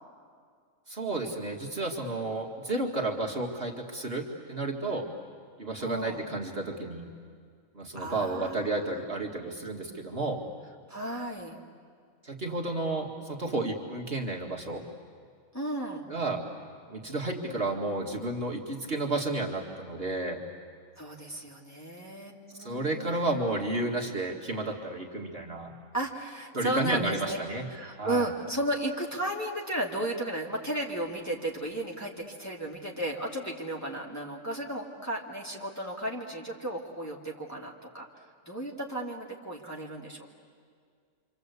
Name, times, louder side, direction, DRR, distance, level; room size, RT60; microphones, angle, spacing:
voice 1, 0.9-5.1 5.6-7.1 7.7-10.4 12.2-14.8 16.1-16.4 16.9-20.4 22.6-25.7 26.5-27.7 28.0-28.3, right 2 dB, 45° right, 0 dB, 2.3 m, -32 dB
voice 2, 5.8-6.2 7.9-9.0 10.9-11.6 15.5-16.0 21.0-23.2 25.9-27.4 27.7-38.1 38.5-40.3, right 1 dB, 10° left, -3 dB, 2.4 m, -34 dB
27.0 x 27.0 x 8.3 m, 2.1 s
omnidirectional pair, 1.4 m